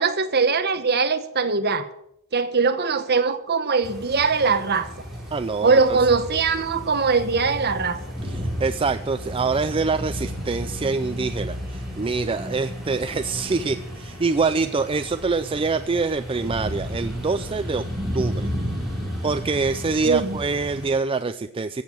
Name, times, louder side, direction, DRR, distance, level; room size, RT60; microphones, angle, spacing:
voice 1, 0.0-1.9 2.3-4.9 5.6-8.0 20.0-20.4, right 4 dB, 50° right, 9 dB, 1.2 m, -21 dB
sound 1, 3.8-20.9, equal, ahead, 4.6 m, -33 dB
voice 2, 5.3-6.0 8.2-17.8 18.1-18.5 19.2-21.8, right 4 dB, 25° right, 10 dB, 0.4 m, -25 dB
16.0 x 7.5 x 7.6 m, 0.77 s
head